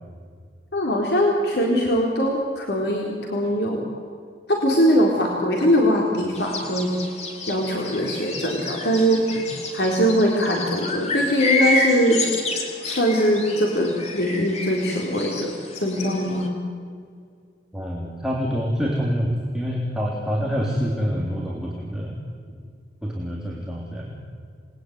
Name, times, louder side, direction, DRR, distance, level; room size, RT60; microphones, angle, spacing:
voice 1, 0.7-3.9 4.5-6.9 7.5-9.4 9.7-12.3 12.8-16.5, equal, 70° left, -1 dB, 4.0 m, -21 dB
sound 1, 6.3-16.5, left 2 dB, 40° left, 3.6 m, -29 dB
voice 2, 17.7-22.1 23.0-24.1, equal, 5° right, -4 dB, 3.4 m, -26 dB
28.5 x 21.0 x 9.5 m, 2.2 s
head